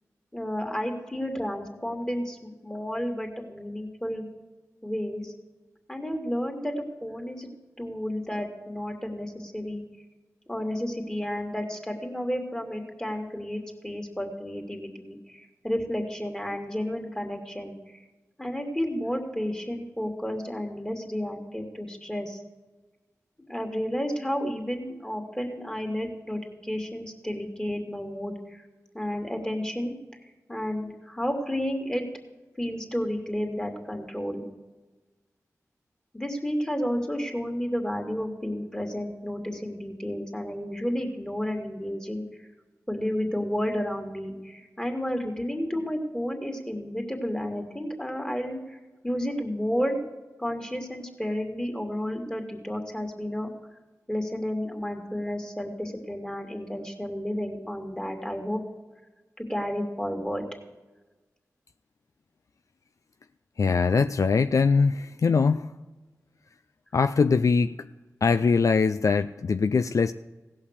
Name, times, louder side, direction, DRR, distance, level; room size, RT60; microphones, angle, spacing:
voice 1, 0.3-4.3 4.8-5.3 5.9-7.5 7.8-9.8 10.5-17.8 18.4-22.4 23.5-28.6 28.9-30.0 30.5-32.0 32.6-34.5 36.1-42.2 42.9-48.8 49.0-50.0 50.4-53.5 54.1-58.6 59.4-60.4, equal, 10° left, 3 dB, 2.4 m, -31 dB
voice 2, 63.6-65.7 66.9-67.9 68.2-70.1, left 5 dB, 60° left, 11 dB, 0.3 m, -22 dB
16.5 x 5.7 x 6.6 m, 1.2 s
cardioid pair, 40°, 6 cm